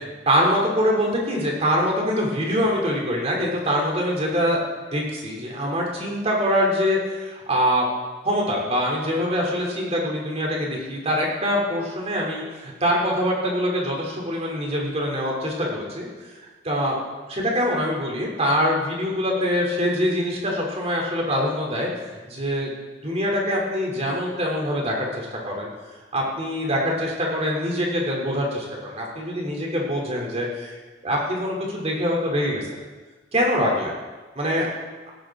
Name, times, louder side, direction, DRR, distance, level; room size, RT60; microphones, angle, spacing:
voice 1, 0.2-7.8 8.2-16.1 16.6-16.9 17.3-21.9 22.3-25.7 26.1-30.8 31.0-32.6 33.3-33.9 34.3-34.7, equal, 35° right, -2 dB, 3.3 m, -24 dB
17.0 x 12.5 x 3.9 m, 1.3 s
head